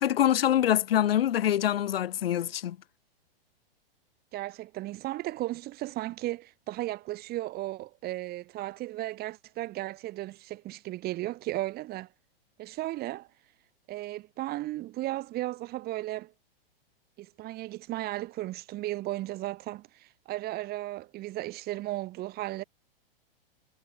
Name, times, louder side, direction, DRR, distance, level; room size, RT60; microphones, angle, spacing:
voice 1, 0.0-2.8, left 11 dB, 75° left, 0.9 m, -25 dB
voice 2, 4.3-12.1 12.6-13.3 13.9-16.3 17.2-22.6, right 17 dB, 35° right, 2.0 m, -35 dB
hypercardioid pair, 115°, 29 cm